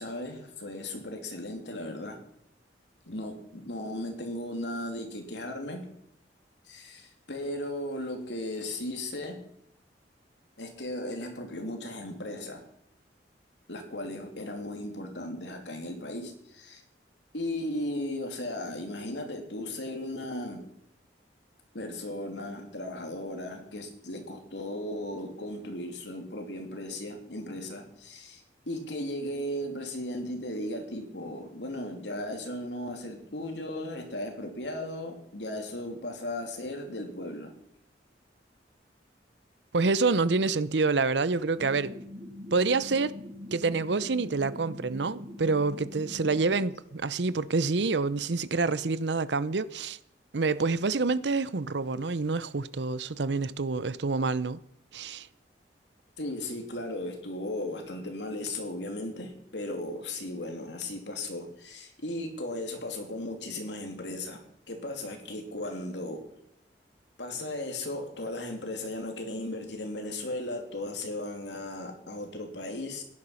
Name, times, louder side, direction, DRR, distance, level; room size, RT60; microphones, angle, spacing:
voice 1, 0.0-2.2 3.1-5.9 6.6-9.4 10.6-12.6 13.7-16.8 17.3-20.8 21.7-37.5 56.2-66.3 67.2-73.0, left 1 dB, 75° left, 2.9 m, -36 dB
voice 2, 39.7-41.9 42.5-43.1 43.5-50.0 50.3-54.6 54.9-55.3, right 3 dB, 70° right, 0.7 m, -27 dB
sound 1, 41.6-46.7, left 1 dB, 30° right, 1.8 m, -43 dB
16.5 x 11.0 x 5.8 m
head